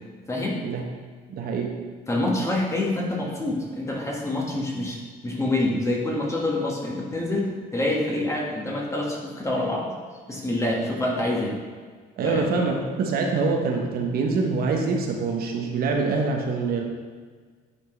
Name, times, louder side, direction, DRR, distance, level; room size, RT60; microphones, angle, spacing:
voice 1, 0.3-0.6 2.1-9.9 10.3-11.5 12.2-12.5, left 1 dB, 15° left, -2 dB, 1.5 m, -26 dB
voice 2, 1.3-1.8 12.2-16.8, right 4 dB, 65° right, 1 dB, 1.0 m, -25 dB
9.8 x 4.4 x 3.3 m, 1.5 s
cardioid pair, 110°, 17 cm